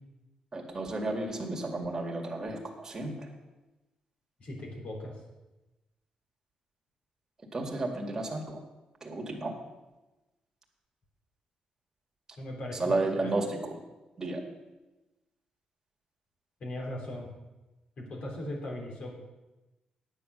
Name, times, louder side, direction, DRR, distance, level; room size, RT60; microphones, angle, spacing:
voice 1, 0.5-3.3 7.5-8.6 9.0-9.6 12.7-13.8 14.2-14.4, right 2 dB, 25° right, 0 dB, 2.2 m, -32 dB
voice 2, 4.4-5.1 12.4-13.3 16.6-17.3 18.0-19.1, left 1 dB, 55° left, 0 dB, 3.6 m, -38 dB
9.9 x 8.4 x 6.4 m, 1.1 s
cardioid pair, 125°, 2 cm